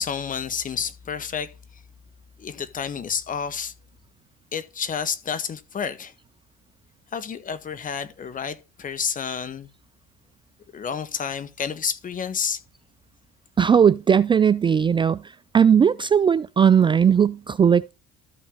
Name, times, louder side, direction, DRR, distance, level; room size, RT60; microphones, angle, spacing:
voice 1, 0.0-1.8 2.4-3.7 4.5-6.1 7.1-9.7 10.7-12.6, left 7 dB, 40° left, 1.6 m, -30 dB
voice 2, 13.6-15.2 15.5-17.9, right 7 dB, 25° right, 0.3 m, -18 dB
13.5 x 4.6 x 4.0 m
hypercardioid pair, 70°, 21 cm